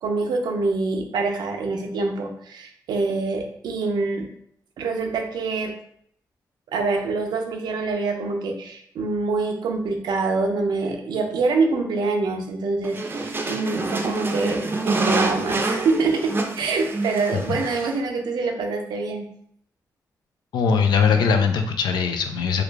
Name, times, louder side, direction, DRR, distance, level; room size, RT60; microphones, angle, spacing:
voice 1, 0.0-4.3 4.8-5.7 6.7-19.3, right 3 dB, 90° right, 3 dB, 0.5 m, -25 dB
sound 1, 12.8-18.0, right 2 dB, 30° right, 0.5 m, -26 dB
voice 2, 20.5-22.6, left 6 dB, 90° left, 6 dB, 0.4 m, -20 dB
3.1 x 2.4 x 3.4 m, 0.68 s
cardioid pair, 70°, 7 cm